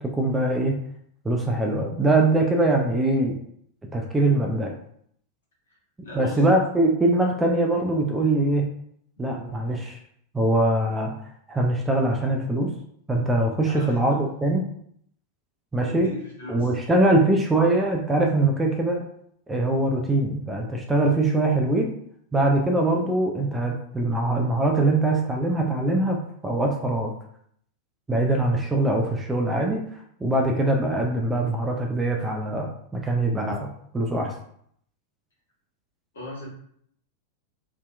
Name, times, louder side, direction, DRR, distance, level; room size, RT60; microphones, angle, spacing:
voice 1, 0.1-0.7 1.2-3.4 3.9-4.7 6.1-8.6 9.2-10.0 10.3-11.1 11.5-12.7 13.1-14.7 15.7-16.1 16.5-19.1 19.5-21.9 22.3-27.1 28.1-29.8 30.2-33.7 33.9-34.3, right 2 dB, 10° right, 1 dB, 0.3 m, -22 dB
voice 2, 6.0-6.4 9.3-9.5 13.6-14.0 15.9-16.7 36.1-36.5, left 1 dB, 65° left, -4 dB, 1.1 m, -38 dB
2.7 x 2.1 x 2.3 m, 0.66 s
figure-of-eight pair, 90°, 0 cm